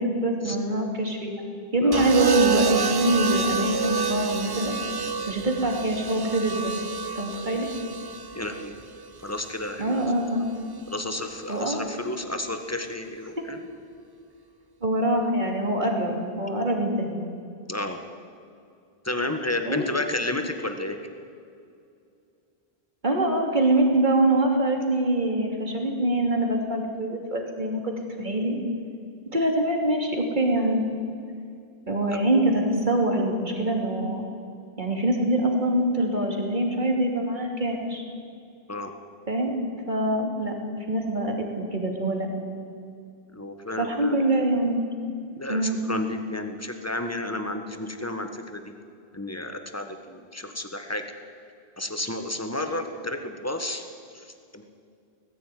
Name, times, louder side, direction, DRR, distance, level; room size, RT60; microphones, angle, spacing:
voice 1, 0.0-1.4 1.7-4.8 5.3-6.7 7.1-7.7 9.8-10.4 11.5-11.8 14.8-17.2 19.6-19.8 23.0-28.6 29.3-30.8 31.9-34.2 34.8-38.0 39.3-39.5 39.9-40.5 40.9-42.3 43.8-44.8 45.5-45.8, right 1 dB, 50° right, 1 dB, 3.1 m, -24 dB
sound 1, 1.9-10.1 11.3-11.7, right 6 dB, 30° right, 0.6 m, -29 dB
voice 2, 8.3-8.7 9.2-10.0 10.9-13.6 17.7-18.0 19.0-21.0 32.1-32.2 38.7-38.9 43.3-44.2 45.4-48.6 49.1-51.0 51.8-53.8 54.1-54.3 54.5-54.6, left 1 dB, 15° left, 6 dB, 1.6 m, -31 dB
19.0 x 14.5 x 9.3 m, 2.4 s
omnidirectional pair, 1.0 m